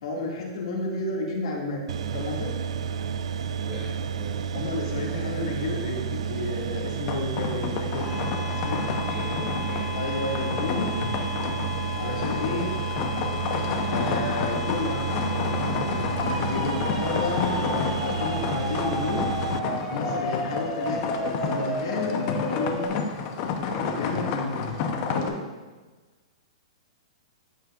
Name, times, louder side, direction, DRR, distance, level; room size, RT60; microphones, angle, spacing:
voice 1, 0.0-1.8 2.1-2.5 4.5-8.1 8.6-8.8 9.6-9.7 9.9-10.9 11.9-12.7 13.8-15.1 15.3-15.6 16.2-19.2 19.9-22.8 23.8-24.6 25.0-25.4, left 2 dB, 65° left, -3 dB, 2.4 m, -31 dB
sound 1, 1.9-19.6, right 7 dB, 75° right, 0.4 m, -31 dB
voice 2, 3.7-4.5 9.1-10.1, equal, 10° right, -12 dB, 2.5 m, -41 dB
sound 2, 7.0-25.3, left 5 dB, 40° left, 0.9 m, -31 dB
sound 3, 8.0-22.9, left 3 dB, 10° left, 1.8 m, -34 dB
14.0 x 5.6 x 2.6 m, 1.3 s
hypercardioid pair, 150°, 3 cm